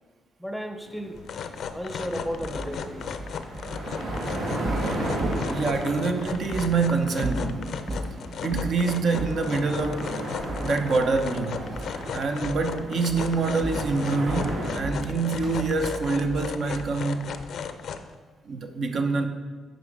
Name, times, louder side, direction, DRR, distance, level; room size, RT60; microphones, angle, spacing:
voice 1, 0.4-1.2 1.7-3.1, equal, ahead, 0.7 m, -34 dB
sound 1, 0.8-14.7, right 1 dB, 90° right, 2.4 m, -35 dB
sound 2, 1.1-18.1, left 6 dB, 65° left, 0.5 m, -36 dB
sound 3, 2.4-6.0 6.5-6.7 7.1-8.1 8.5-8.8 9.2-9.4 9.8-10.0 10.5-11.4 11.7-12.1 12.4-12.7 13.1-17.0, right 1 dB, 35° right, 2.2 m, -35 dB
voice 2, 5.5-7.8 8.4-10.1 10.6-11.8 12.1-17.2 18.5-19.3, right 4 dB, 60° right, 0.8 m, -26 dB
9.2 x 5.1 x 4.8 m
cardioid pair, 90°, 0 cm